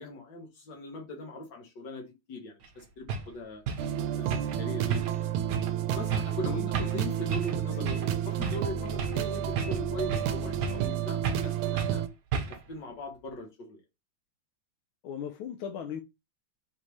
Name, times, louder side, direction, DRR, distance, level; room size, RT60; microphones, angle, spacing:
voice 1, 0.0-3.6 4.2-5.3 5.9-7.9 8.3-12.0 12.7-13.8, left 1 dB, 60° left, 2.0 m, -40 dB
sound 1, 2.6-2.7 3.1-3.3 3.7-3.9 4.3-4.6 4.9-5.2 5.5-5.7 6.1-6.4 6.7-7.0 7.3-7.6 7.9-8.1 8.4-9.2 9.6-10.3 10.6-10.9 11.2-11.5 11.8-12.0 12.3-12.7, right 5 dB, 65° right, 1.2 m, -33 dB
sound 2, 3.8-12.1, right 10 dB, 90° right, 1.4 m, -31 dB
voice 2, 6.4-6.9 7.7-7.9 15.0-16.0, left 8 dB, 80° left, 1.4 m, -37 dB
4.1 x 3.5 x 3.1 m
omnidirectional pair, 2.2 m